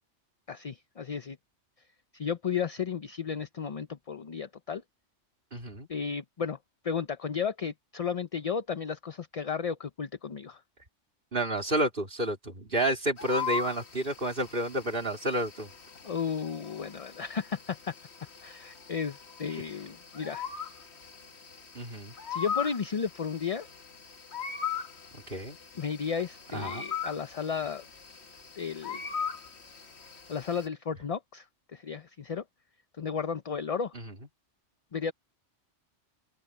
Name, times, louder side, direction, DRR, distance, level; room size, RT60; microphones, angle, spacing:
voice 1, 0.5-1.4 2.1-4.8 5.9-6.6 6.8-10.6 16.0-17.9 18.4-20.5 22.3-23.7 25.8-27.8 28.6-29.1 30.3-31.5 31.7-32.4 33.0-33.9 34.9-35.1, left 6 dB, 40° left, 0.6 m, -33 dB
voice 2, 5.5-5.9 11.3-15.7 19.5-19.6 21.7-22.1 25.1-25.6 26.5-26.9 33.9-34.1, right 1 dB, 45° right, 3.7 m, -30 dB
sound 1, 13.2-30.7, left 7 dB, 60° left, 1.7 m, -40 dB
open air
omnidirectional pair, 1.2 m